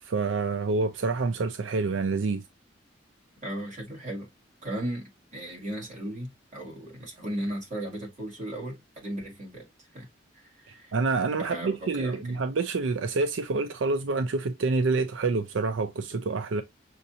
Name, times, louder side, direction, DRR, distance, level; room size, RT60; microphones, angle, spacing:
voice 1, 0.0-2.4 10.9-16.6, right 3 dB, 90° right, 0.5 m, -27 dB
voice 2, 3.4-4.3 4.6-9.7 9.9-10.1 10.3-10.9 11.5-12.4, right 1 dB, 40° right, 2.3 m, -36 dB
6.4 x 2.7 x 2.7 m
head